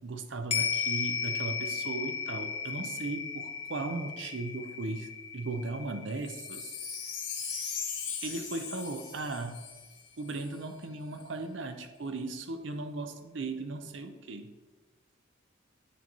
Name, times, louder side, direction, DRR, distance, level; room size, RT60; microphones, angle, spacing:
voice 1, 0.0-6.7 8.2-9.6 10.2-14.5, right 3 dB, 65° right, 8 dB, 0.6 m, -37 dB
sound 1, 0.5-9.1 9.4-9.5, left 6 dB, 30° left, 0.4 m, -36 dB
Wind chime, 6.2-10.6 11.1-11.2, left 6 dB, 70° left, 2.1 m, -39 dB
8.6 x 5.4 x 3.0 m, 1.2 s
head